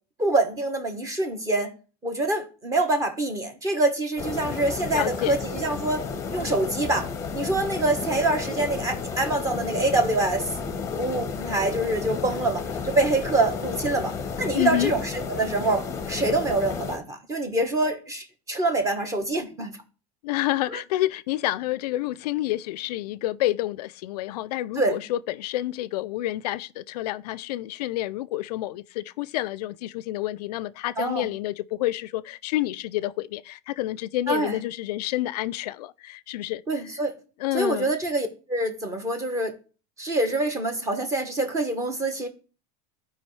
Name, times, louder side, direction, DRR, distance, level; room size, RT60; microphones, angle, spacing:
voice 1, 0.2-1.7 2.0-7.1 7.3-10.5 11.0-19.7 20.7-20.8 24.8-25.0 31.0-31.3 34.3-34.6 36.7-37.1 37.5-39.5 40.0-42.3, right 2 dB, 15° right, 1.1 m, -25 dB
sound 1, 4.2-17.0, left 5 dB, 15° left, 0.9 m, -32 dB
voice 2, 4.9-5.4 14.5-14.9 20.2-36.6 37.4-37.9, left 15 dB, 85° left, 0.4 m, -29 dB
14.0 x 4.9 x 3.2 m
supercardioid pair, 160°, 20 cm